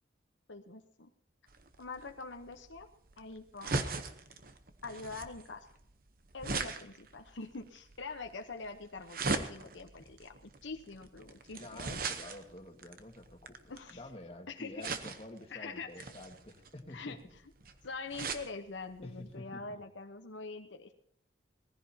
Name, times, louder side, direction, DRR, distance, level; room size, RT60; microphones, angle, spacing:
voice 1, 0.5-1.1 1.8-2.9 3.2-3.9 4.8-5.8 6.3-11.9 13.7-14.0 14.5-14.9 15.5-15.9 16.9-17.2 17.8-20.9, left 3 dB, 85° left, 6 dB, 1.0 m, -44 dB
sound 1, 1.5-14.1 14.8-15.4 15.9-18.5 19.0-19.1 19.3-19.4, right 3 dB, 50° right, 0.9 m, -39 dB
voice 2, 11.5-17.2 19.0-19.8, left 1 dB, 30° left, 2 dB, 1.8 m, -49 dB
19.0 x 15.0 x 2.9 m, 0.66 s
head